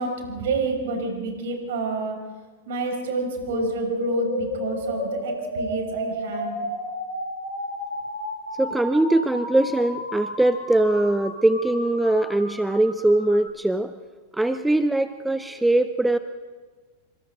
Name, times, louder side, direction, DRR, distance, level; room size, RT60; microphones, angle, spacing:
voice 1, 0.0-2.2 2.7-6.6, right 3 dB, 55° right, 3 dB, 5.7 m, -29 dB
sound 1, 3.5-13.5, equal, 70° left, 7.0 m, -32 dB
voice 2, 8.6-13.9 14.3-16.2, right 1 dB, 5° right, 11 dB, 0.7 m, -21 dB
28.5 x 26.0 x 3.8 m, 1.5 s
figure-of-eight pair, 90°, 0 cm